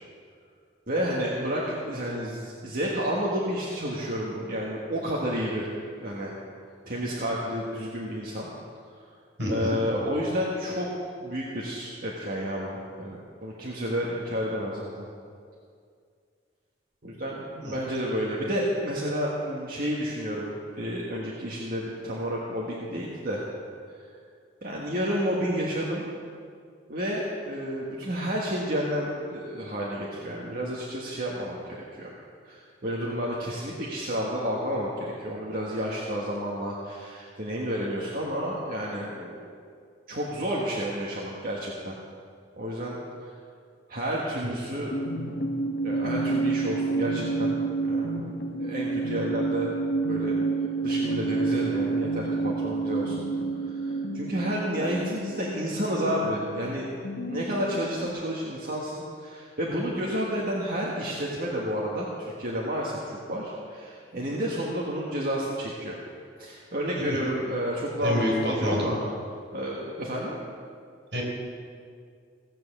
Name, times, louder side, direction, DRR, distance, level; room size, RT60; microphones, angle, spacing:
voice 1, 0.9-5.7 6.0-6.3 6.8-8.5 9.5-15.1 17.0-20.5 20.7-23.4 24.6-26.1 26.9-32.1 32.4-39.5 40.1-41.9 42.6-43.0 43.9-44.9 45.8-47.6 47.9-48.3 48.6-49.7 50.1-50.4 50.8-53.2 53.5-56.9 57.3-66.0 66.4-69.0 69.5-70.4, equal, 50° right, -4 dB, 1.5 m, -30 dB
voice 2, 9.4-9.8 17.5-17.8 66.9-67.2 68.0-68.9 71.1-71.2, equal, 75° right, -2 dB, 4.2 m, -28 dB
sound 1, 44.7-58.1, right 3 dB, 60° left, 0.8 m, -29 dB
16.5 x 7.6 x 7.4 m, 2.2 s
head